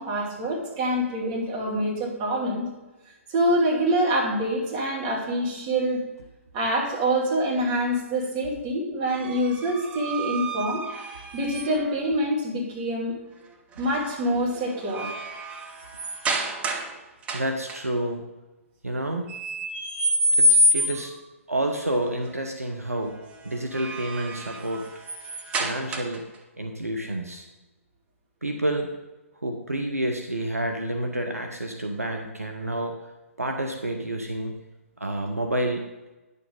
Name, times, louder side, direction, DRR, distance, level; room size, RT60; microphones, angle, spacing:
voice 1, 0.0-2.6 3.3-6.0 6.5-10.8 11.3-13.2 13.8-15.1, right 1 dB, 30° right, -3 dB, 2.5 m, -25 dB
sound 1, 9.1-12.0 13.8-14.1 14.5-16.9 17.2-17.8 19.3-21.2 23.5-26.3, equal, 15° right, 0.8 m, -27 dB
voice 2, 17.3-18.2 18.8-19.3 20.4-21.1 21.5-23.2 23.4-24.8 25.6-26.2 26.6-27.5 28.4-28.9 29.4-32.9 33.4-34.5 35.0-35.8, right 1 dB, 90° right, 3 dB, 1.0 m, -29 dB
9.7 x 6.8 x 3.8 m, 1.1 s
figure-of-eight pair, 125°, 8 cm